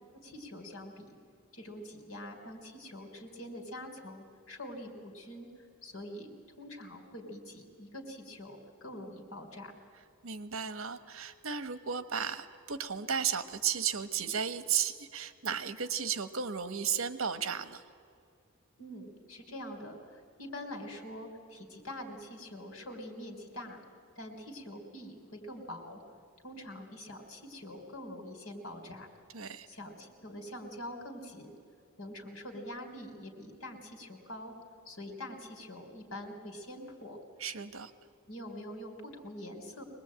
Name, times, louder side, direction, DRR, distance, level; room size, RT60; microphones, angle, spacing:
voice 1, 0.2-1.1 1.5-5.5 5.8-6.3 6.6-9.7 18.8-23.8 24.2-26.0 26.4-29.1 29.7-31.6 32.0-34.5 34.9-37.2 38.3-39.8, left 1 dB, 75° left, 4 dB, 3.9 m, -45 dB
voice 2, 10.2-17.8 29.3-29.7 37.4-37.9, right 7 dB, 75° right, 11 dB, 1.2 m, -34 dB
24.0 x 20.0 x 8.8 m, 2.3 s
head